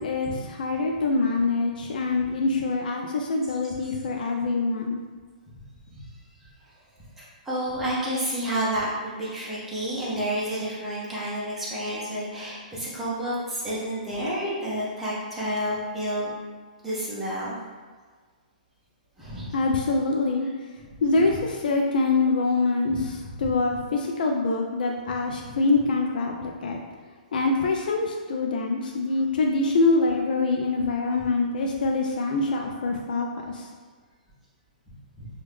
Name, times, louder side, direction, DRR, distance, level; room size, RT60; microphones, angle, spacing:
voice 1, 0.0-5.0 19.5-20.5 21.0-26.8 27.3-33.7, left 3 dB, 70° left, 1 dB, 0.3 m, -25 dB
voice 2, 3.4-3.9 7.4-16.3 16.8-17.6 19.2-19.6 20.4-20.5 21.1-21.4 22.9-23.0 23.3-23.5 25.4-25.5 35.2-35.3, right 1 dB, 5° right, -9 dB, 0.8 m, -30 dB
3.0 x 2.3 x 3.4 m, 1.5 s
hypercardioid pair, 160°, 5 cm